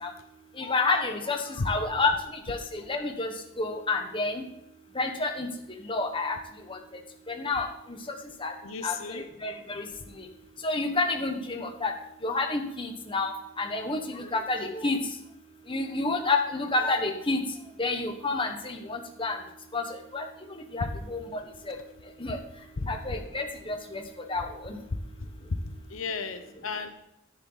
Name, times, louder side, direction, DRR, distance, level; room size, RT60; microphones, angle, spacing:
voice 1, 0.6-2.1 2.5-4.4 4.9-5.5 5.8-6.4 6.7-6.8 7.3-7.7 8.1-8.5 8.8-9.8 10.2-10.3 10.6-11.9 12.2-15.0 15.7-17.4 17.8-19.4 19.7-19.8 20.1-21.4 21.7-21.8 22.2-22.4 22.9-24.0 24.3-24.8, left 3 dB, 25° left, 4 dB, 1.3 m, -29 dB
voice 2, 8.6-9.2 20.8-20.9 22.8-22.9 25.9-26.9, left 4 dB, 85° left, 8 dB, 0.9 m, -33 dB
10.5 x 9.7 x 4.0 m, 0.82 s
head